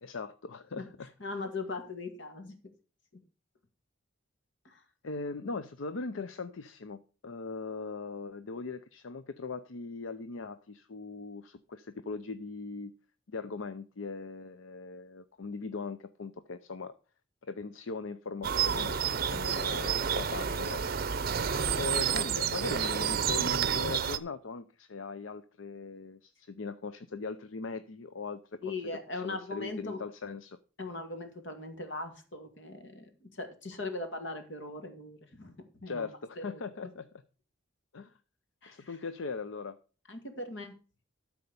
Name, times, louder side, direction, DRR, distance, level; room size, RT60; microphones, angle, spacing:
voice 1, 0.0-1.1 5.0-12.9 13.3-16.9 17.4-28.7 29.1-30.6 35.9-37.1 37.9-38.1 38.7-39.8, left 4 dB, 80° left, 11 dB, 0.6 m, -40 dB
voice 2, 1.2-2.6 4.6-4.8 28.6-30.0 30.8-36.1 36.4-36.6 38.6-39.0 40.1-40.8, left 2 dB, 65° left, 6 dB, 2.1 m, -40 dB
sound 1, 18.4-24.2, right 7 dB, 50° right, 0.6 m, -30 dB
12.5 x 4.6 x 6.9 m, 0.37 s
head